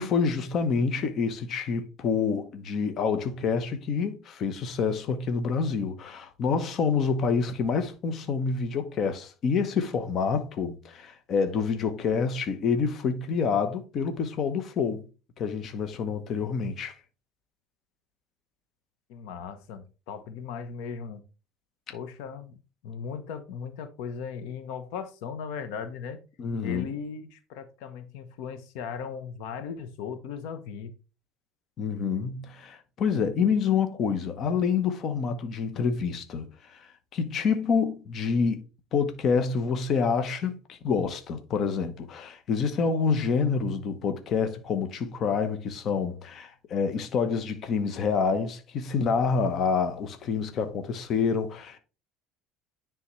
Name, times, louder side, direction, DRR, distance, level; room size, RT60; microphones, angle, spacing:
voice 1, 0.0-15.1 15.4-17.0 26.4-26.9 31.8-38.6 38.9-51.8, left 5 dB, 40° left, 0.9 m, -27 dB
voice 2, 19.1-21.2 21.9-22.6 22.8-26.2 26.6-30.9, left 6 dB, 80° left, 0.9 m, -37 dB
9.9 x 3.6 x 3.1 m
cardioid pair, 140°, 0 cm